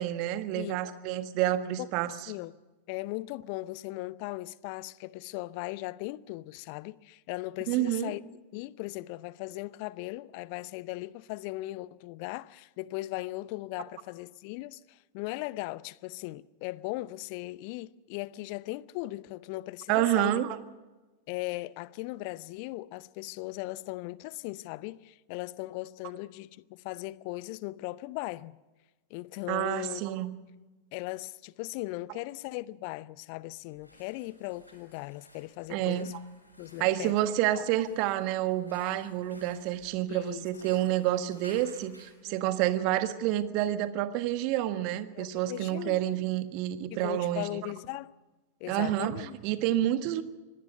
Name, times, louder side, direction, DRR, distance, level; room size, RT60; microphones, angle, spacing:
voice 1, 0.0-2.1 7.7-8.1 19.9-20.6 29.5-30.3 35.7-36.1 36.8-47.6 48.7-50.2, right 13 dB, 45° right, 1.5 m, -29 dB
voice 2, 2.9-8.2 8.5-20.4 21.3-28.6 29.1-30.0 30.9-36.1 36.6-37.1 37.5-37.6 40.1-40.5 42.3-42.4 45.1-46.0 46.9-48.1 48.6-49.3, left 19 dB, 45° left, 0.6 m, -38 dB
sound 1, 33.6-42.2, equal, 85° left, 6.4 m, -57 dB
25.0 x 18.5 x 5.6 m
figure-of-eight pair, 90°, 0 cm